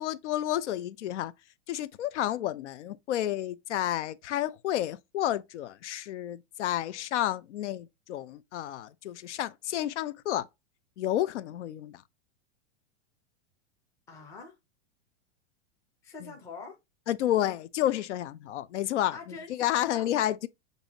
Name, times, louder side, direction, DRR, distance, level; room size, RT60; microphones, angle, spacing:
voice 1, 0.0-1.3 1.7-10.5 11.0-12.0 17.1-19.2 19.5-20.5, left 12 dB, 70° left, 0.6 m, -30 dB
voice 2, 14.1-14.6 16.0-16.8 19.1-20.1, left 4 dB, 10° left, 0.5 m, -44 dB
6.7 x 2.7 x 2.9 m
supercardioid pair, 175°, 36 cm